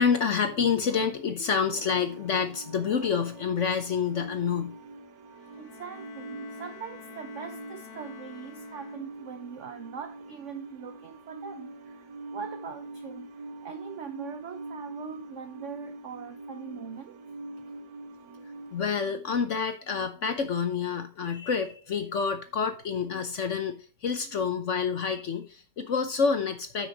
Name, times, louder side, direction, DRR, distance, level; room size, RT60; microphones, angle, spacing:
voice 1, 0.0-4.7 18.7-26.9, left 6 dB, 55° left, 0.9 m, -28 dB
sound 1, 1.7-18.9, right 2 dB, 85° right, 1.8 m, -44 dB
Bowed string instrument, 5.3-9.4, left 9 dB, 80° left, 1.6 m, -49 dB
voice 2, 5.6-13.3 13.6-17.2, right 7 dB, 70° right, 0.7 m, -42 dB
9.5 x 6.1 x 3.9 m
omnidirectional pair, 2.0 m